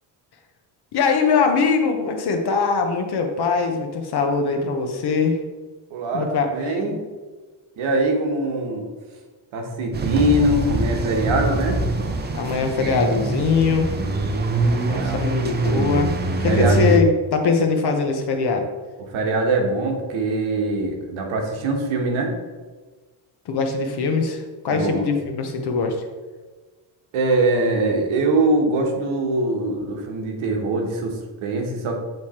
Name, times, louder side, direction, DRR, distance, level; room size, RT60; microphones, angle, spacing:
voice 1, 0.9-5.4 6.1-7.0 12.3-13.9 14.9-16.1 16.4-18.7 23.5-26.0, left 4 dB, 55° left, 5 dB, 1.0 m, -22 dB
voice 2, 5.9-7.0 7.8-8.8 9.5-11.8 14.8-15.2 16.5-16.8 19.1-22.3 24.7-25.1 27.1-32.0, right 2 dB, 90° right, 2 dB, 1.3 m, -22 dB
sound 1, 9.9-17.0, right 2 dB, 20° right, 0.5 m, -23 dB
7.9 x 3.3 x 4.3 m, 1.3 s
cardioid pair, 145°, 47 cm